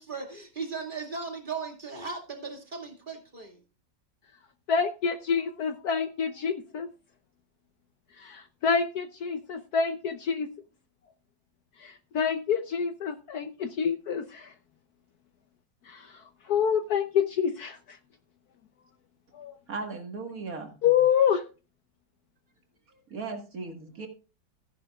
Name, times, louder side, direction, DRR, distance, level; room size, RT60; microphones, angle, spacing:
voice 1, 0.0-3.6, right 4 dB, 25° right, 2 dB, 2.3 m, -37 dB
voice 2, 4.7-6.9 8.2-10.5 11.8-14.5 15.9-16.0 16.5-17.8 19.4-19.5 20.8-21.4, left 7 dB, 65° left, 9 dB, 1.1 m, -27 dB
voice 3, 19.7-20.7 23.1-24.1, right 4 dB, 50° right, 4 dB, 2.0 m, -37 dB
14.5 x 11.0 x 2.4 m, 0.33 s
omnidirectional pair, 2.1 m